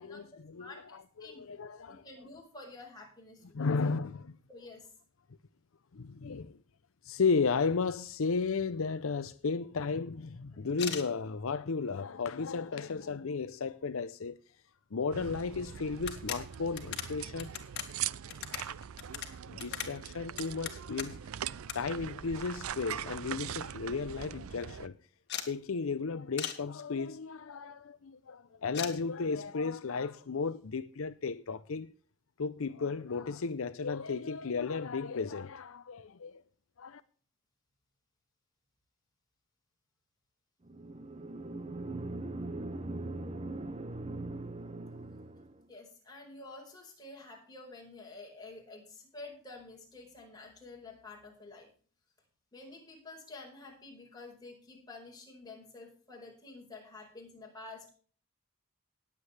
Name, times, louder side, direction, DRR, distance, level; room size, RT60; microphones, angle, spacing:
voice 1, 0.0-2.0 3.5-4.4 5.9-6.6 7.0-14.4 14.9-17.5 19.5-21.2 21.7-25.0 25.5-31.9 32.4-36.4 36.8-37.0, left 4 dB, 75° left, 0.6 m, -34 dB
voice 2, 0.6-1.5 1.8-3.7 4.5-4.9 45.7-51.7 52.5-57.9, left 3 dB, 20° left, 4.8 m, -49 dB
sound 1, 10.7-11.1 11.8-11.9 12.3-13.0 13.4-13.5 13.7-13.8 15.2-15.3 15.5-15.6 16.0-21.3 21.7-21.8 22.1-22.8 23.2-23.3 23.5-23.6 23.9-24.2 25.3-25.5 26.4-26.6 28.7-28.9, left 9 dB, 55° left, 2.0 m, -40 dB
sound 2, 15.1-24.9, right 9 dB, 85° right, 0.5 m, -41 dB
sound 3, 40.7-45.6, right 2 dB, 30° right, 0.7 m, -40 dB
19.5 x 8.2 x 3.4 m
head